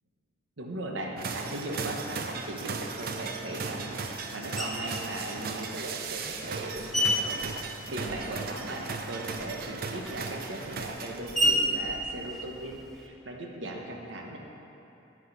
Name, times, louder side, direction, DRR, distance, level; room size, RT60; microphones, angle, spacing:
voice 1, 0.6-7.4 7.9-14.4, right 1 dB, 80° right, 1 dB, 1.1 m, -38 dB
sound 1, 1.2-11.6, right 4 dB, 55° right, 0.5 m, -37 dB
Screech, 4.6-5.0 5.8-8.5 8.8-13.1, equal, ahead, 0.9 m, -32 dB
10.5 x 4.8 x 5.9 m, 3.0 s
head